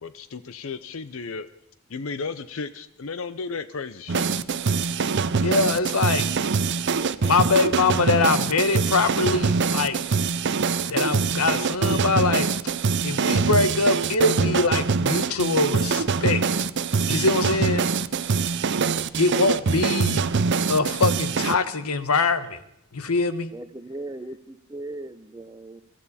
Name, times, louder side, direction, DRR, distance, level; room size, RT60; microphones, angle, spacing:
voice 1, 0.0-1.5 1.9-4.3, left 4 dB, 65° left, 0.6 m, -34 dB
sound 1, 4.1-21.5, right 5 dB, 50° right, 0.6 m, -24 dB
voice 2, 5.4-6.3 7.2-10.0 10.9-12.5 13.0-16.4 17.1-17.9 19.2-20.2 20.7-22.6 22.9-23.5, left 3 dB, 80° left, 1.2 m, -23 dB
voice 3, 6.9-7.7 23.5-25.8, right 2 dB, 15° right, 0.7 m, -38 dB
23.0 x 13.5 x 4.2 m
head